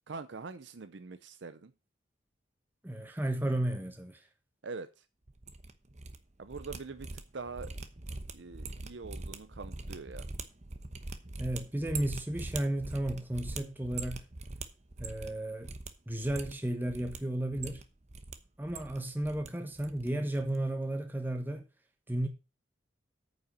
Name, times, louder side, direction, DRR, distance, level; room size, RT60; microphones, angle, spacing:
voice 1, 0.1-1.7 4.6-5.1 6.4-7.7 8.3-10.3, right 4 dB, 65° right, 0.6 m, -44 dB
voice 2, 2.8-4.2 11.4-14.2 15.0-15.7 16.1-17.8 18.6-21.7 22.1-22.3, right 1 dB, 10° right, 1.2 m, -33 dB
sound 1, 5.3-6.2 6.4-15.4 15.6-15.9 16.2-17.2 17.5-18.3 18.6-19.5 19.8-20.1 20.3-20.6, right 3 dB, 35° right, 1.0 m, -42 dB
9.1 x 5.7 x 6.8 m
head